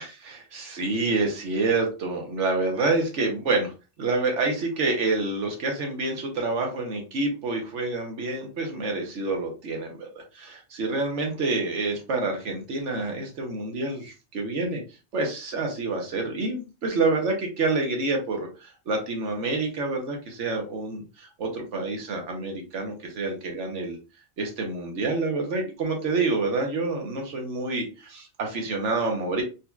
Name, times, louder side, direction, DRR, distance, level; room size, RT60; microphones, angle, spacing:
voice 1, 0.0-3.7 4.0-10.1 10.3-14.8 15.1-24.0 24.4-29.4, right 3 dB, 85° right, 2 dB, 1.3 m, -28 dB
4.0 x 2.8 x 2.3 m, 0.31 s
omnidirectional pair, 1.2 m